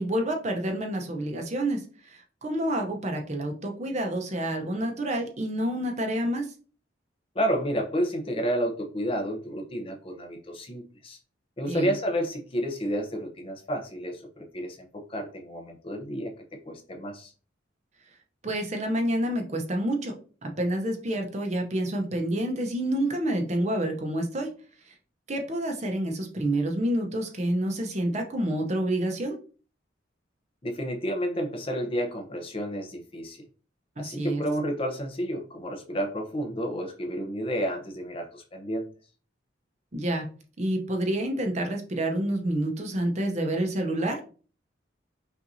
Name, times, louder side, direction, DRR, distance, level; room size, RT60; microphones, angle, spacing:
voice 1, 0.0-6.5 11.7-11.9 18.4-20.1 20.4-24.5 25.3-29.4 34.0-34.4 39.9-40.3 40.6-44.2, right 1 dB, 35° right, 3 dB, 0.7 m, -28 dB
voice 2, 7.3-11.2 11.6-17.3 30.6-33.4 34.0-38.9, equal, 30° left, 4 dB, 0.7 m, -31 dB
5.6 x 2.6 x 2.6 m, 0.38 s
head